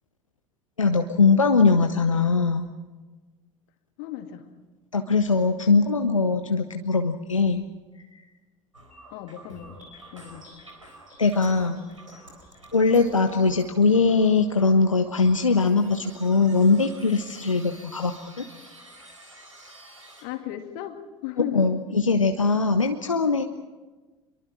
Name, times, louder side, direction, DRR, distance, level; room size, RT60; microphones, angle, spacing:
voice 1, 0.8-2.7 4.9-7.6 11.2-11.8 12.7-18.5 21.4-23.4, left 4 dB, 85° left, 6 dB, 0.8 m, -21 dB
voice 2, 4.0-4.5 9.1-9.8 10.1-10.5 20.2-21.0 21.2-22.1, left 12 dB, 55° left, 7 dB, 2.2 m, -35 dB
sound 1, 8.7-20.2, right 1 dB, 85° right, 3.9 m, -49 dB
25.5 x 22.5 x 6.0 m, 1.3 s
figure-of-eight pair, 65°, 16 cm